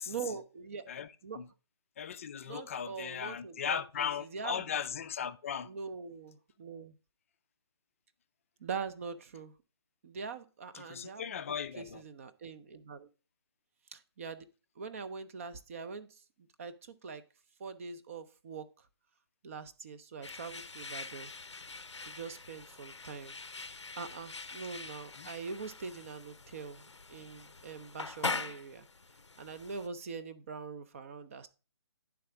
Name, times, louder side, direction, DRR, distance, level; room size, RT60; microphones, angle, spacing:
voice 1, 0.1-0.9 1.2-1.4 2.5-4.7 5.7-6.9 8.6-9.5 10.0-11.2 11.8-13.1 13.9-14.5 14.8-16.2 16.6-17.2 17.6-18.7 19.4-21.3 22.1-23.4 24.0-28.9 29.4-31.5, right 5 dB, 30° right, 0.5 m, -43 dB
voice 2, 0.9-1.5 2.0-5.7 10.7-12.0 25.2-25.3, left 8 dB, 30° left, 0.4 m, -37 dB
sound 1, 20.2-29.9, left 3 dB, 85° left, 0.6 m, -43 dB
10.0 x 3.5 x 4.7 m
figure-of-eight pair, 140°, 15 cm